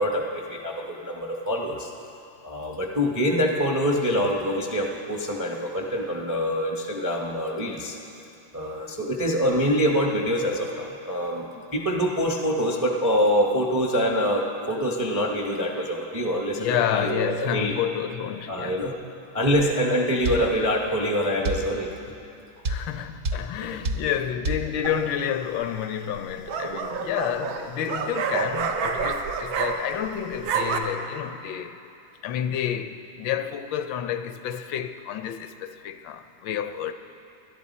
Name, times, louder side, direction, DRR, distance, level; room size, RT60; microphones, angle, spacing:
voice 1, 0.0-1.9 2.4-8.0 8.5-11.5 11.7-17.7 18.5-18.9 19.3-21.9 23.7-23.8, equal, 20° right, 0.4 m, -25 dB
voice 2, 16.6-18.8 22.7-31.8 32.2-36.9, left 9 dB, 80° left, 1.3 m, -29 dB
sound 1, 20.3-20.5 21.5-21.7 22.7-22.9 23.3-23.5 23.9-24.1 24.5-24.7, right 2 dB, 60° right, 1.3 m, -26 dB
sound 2, 24.8-25.3 26.2-30.1 30.3-30.8, right 6 dB, 85° right, 1.6 m, -28 dB
20.0 x 11.5 x 4.2 m
omnidirectional pair, 2.1 m